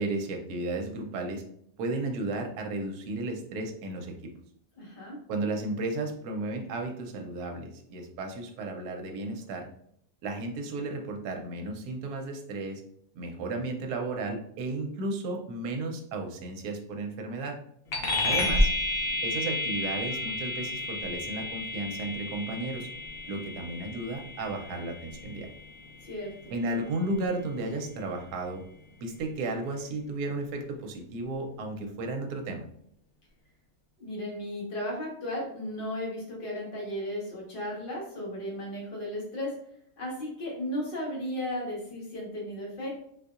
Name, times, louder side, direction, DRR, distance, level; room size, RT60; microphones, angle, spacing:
voice 1, 0.0-1.4 1.8-4.1 5.3-9.7 10.2-12.8 13.2-17.6 18.2-18.7 19.2-22.9 23.3-25.5 26.5-28.6 29.0-32.6, right 2 dB, 70° right, 3 dB, 1.1 m, -34 dB
voice 2, 4.7-5.2 18.0-18.5 26.0-26.5 34.0-39.6 40.0-43.1, left 1 dB, 35° left, -4 dB, 1.2 m, -35 dB
sound 1, 17.9-27.8, left 2 dB, 55° left, 0.6 m, -32 dB
4.0 x 2.7 x 2.4 m, 0.67 s
omnidirectional pair, 1.8 m